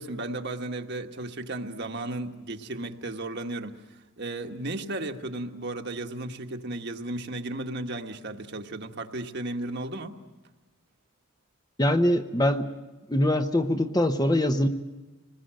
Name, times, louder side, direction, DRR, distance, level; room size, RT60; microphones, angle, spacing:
voice 1, 0.0-10.1, right 2 dB, 50° right, 5 dB, 1.4 m, -34 dB
voice 2, 11.8-12.7 13.1-14.7, left 1 dB, 20° left, 7 dB, 0.8 m, -23 dB
26.5 x 20.5 x 7.6 m, 1.2 s
head